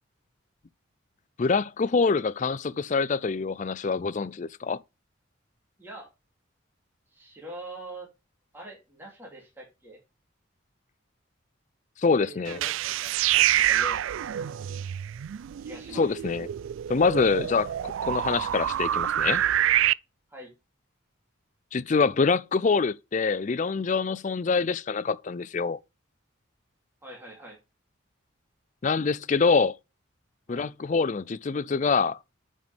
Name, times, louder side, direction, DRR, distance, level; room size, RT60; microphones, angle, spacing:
voice 1, 1.4-4.8 12.0-12.6 15.9-16.5 16.9-19.4 21.7-25.8 28.8-29.7 30.5-32.2, left 4 dB, 35° left, 0.4 m, -25 dB
voice 2, 5.8-6.1 7.1-8.1 8.5-10.0 12.2-14.1 15.6-16.0 20.3-20.5 27.0-27.6 30.5-30.7, right 1 dB, 10° right, 2.9 m, -44 dB
sound 1, 12.5-19.9, right 12 dB, 75° right, 0.3 m, -27 dB
9.3 x 5.2 x 3.5 m
head